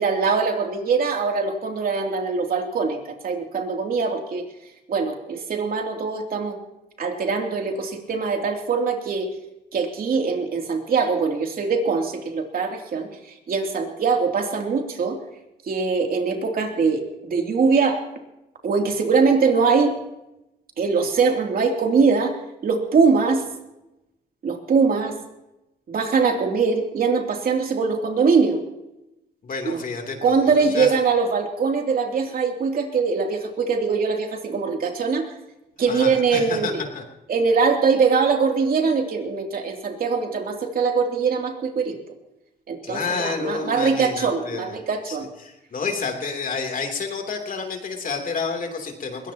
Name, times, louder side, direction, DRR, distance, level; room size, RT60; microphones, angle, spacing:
voice 1, 0.0-4.4 4.9-6.6 7.0-9.3 9.7-13.1 13.5-15.2 15.7-18.0 18.6-19.9 20.8-22.4 22.6-23.4 24.4-25.1 25.9-28.6 29.6-29.8 30.2-35.3 35.8-36.8 37.3-42.0 42.7-45.3, right 5 dB, 55° right, 3 dB, 3.0 m, -22 dB
voice 2, 29.4-30.9 35.8-37.0 42.8-44.7 45.1-49.3, left 4 dB, 50° left, 3 dB, 3.2 m, -30 dB
21.5 x 18.0 x 3.0 m, 0.92 s
cardioid pair, 90°, 18 cm